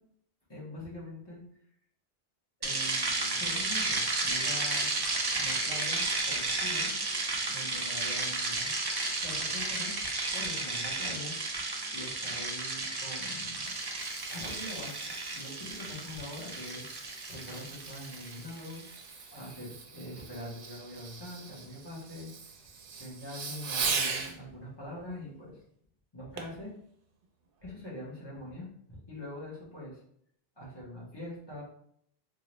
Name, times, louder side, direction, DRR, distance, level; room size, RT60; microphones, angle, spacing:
voice 1, 0.5-1.4 2.6-4.9 5.3-6.9 7.5-8.7 9.2-11.4 11.9-13.8 14.3-19.0 19.3-22.3 23.0-25.6 26.1-26.7 27.6-30.0 30.6-31.6, left 1 dB, 25° left, -7 dB, 1.3 m, -43 dB
sound 1, 2.6-18.9, right 3 dB, 40° right, 0.3 m, -33 dB
Fireworks, 13.4-24.4 26.4-26.6 27.2-27.3, right 5 dB, 65° right, 0.7 m, -40 dB
3.8 x 2.5 x 3.1 m, 0.68 s
omnidirectional pair, 1.1 m